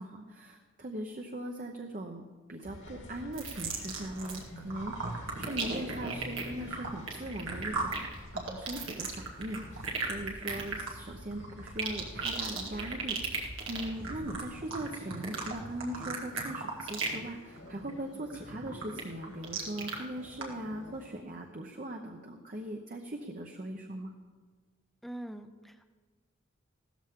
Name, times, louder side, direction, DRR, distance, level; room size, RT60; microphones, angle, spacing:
voice 1, 0.0-2.2 2.5-24.1, right 1 dB, 40° right, 2 dB, 0.8 m, -40 dB
sound 1, 2.6-21.1, equal, 75° left, 3.0 m, -49 dB
sound 2, 3.3-4.4 4.7-17.3 17.6-17.9 18.3-20.0 20.4-20.5, right 4 dB, 85° right, 2.0 m, -36 dB
voice 2, 25.0-25.9, right 1 dB, ahead, 8 dB, 0.6 m, -43 dB
15.5 x 13.5 x 3.7 m, 1.4 s
head